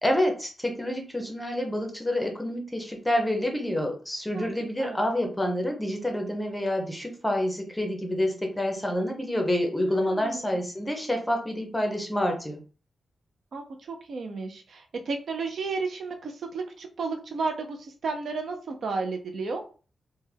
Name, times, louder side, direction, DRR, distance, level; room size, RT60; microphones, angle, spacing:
voice 1, 0.0-12.6, left 1 dB, 5° left, 3 dB, 0.6 m, -28 dB
voice 2, 9.8-10.6 13.5-19.6, right 4 dB, 60° right, 4 dB, 0.4 m, -33 dB
3.3 x 2.1 x 3.2 m, 0.38 s
wide cardioid pair, 155°, 0 cm